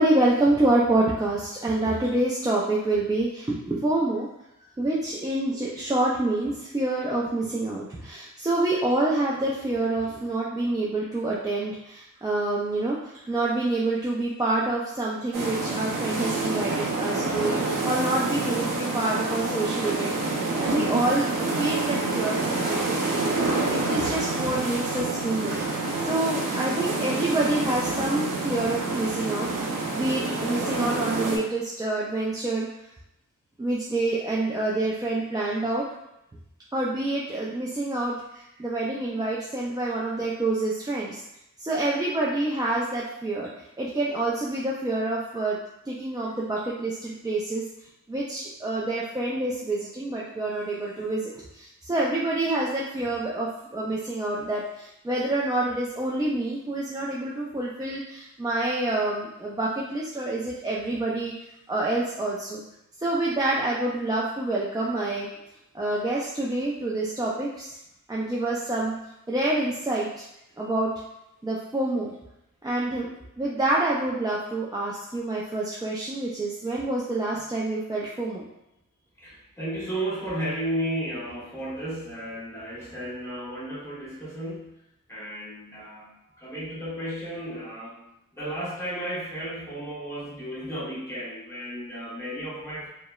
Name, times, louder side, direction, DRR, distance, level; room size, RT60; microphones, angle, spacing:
voice 1, 0.0-4.3 4.8-25.6 26.0-32.7 33.6-35.8 36.7-41.2 41.6-43.5 43.8-45.6 45.9-47.6 48.1-61.3 61.7-62.6 63.0-65.3 65.7-67.7 68.1-68.9 69.3-70.2 70.6-70.9 71.4-72.1 72.6-73.1 73.4-78.4, right 2 dB, 15° right, -6 dB, 0.3 m, -27 dB
sound 1, 15.3-31.4, right 3 dB, 80° right, 0.5 m, -27 dB
voice 2, 79.2-84.7 85.1-86.1 86.4-88.0 88.3-92.9, right 1 dB, 10° left, -9 dB, 1.3 m, -33 dB
2.8 x 2.0 x 2.3 m, 0.85 s
wide cardioid pair, 50°, 32 cm